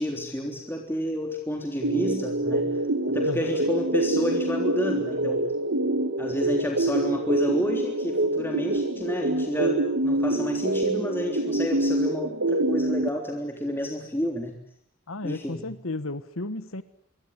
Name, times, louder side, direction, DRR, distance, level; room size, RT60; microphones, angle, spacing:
voice 1, 0.0-2.7 3.1-5.5 6.2-14.6 15.2-15.7, equal, 10° left, 2 dB, 3.5 m, -30 dB
sound 1, 1.8-13.1, right 1 dB, 65° right, 1.9 m, -26 dB
voice 2, 3.2-3.6 15.1-16.8, left 2 dB, 85° left, 13 dB, 1.4 m, -33 dB
27.0 x 23.0 x 9.6 m, 0.67 s
head